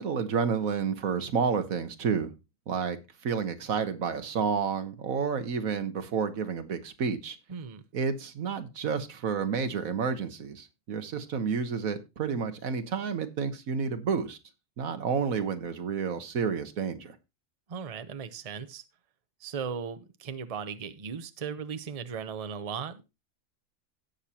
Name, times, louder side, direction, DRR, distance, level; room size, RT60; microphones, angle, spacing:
voice 1, 0.0-2.3 2.7-3.0 3.2-7.4 7.9-14.4 14.8-17.2, right 6 dB, 85° right, 1.6 m, -30 dB
voice 2, 7.5-7.8 17.7-18.8 19.4-23.0, right 6 dB, 35° right, 0.8 m, -37 dB
17.0 x 6.6 x 2.8 m
omnidirectional pair, 1.4 m